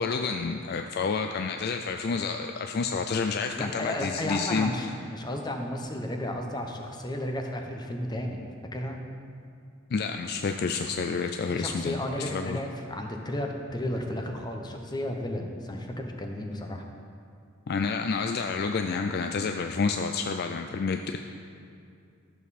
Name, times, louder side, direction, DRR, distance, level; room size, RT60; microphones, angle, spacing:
voice 1, 0.0-4.9 9.9-12.6 17.7-21.2, left 4 dB, 50° left, 5 dB, 0.4 m, -29 dB
voice 2, 3.6-8.4 8.7-9.0 11.5-16.8, left 1 dB, 20° left, 3 dB, 0.9 m, -33 dB
13.5 x 7.1 x 4.2 m, 2.4 s
head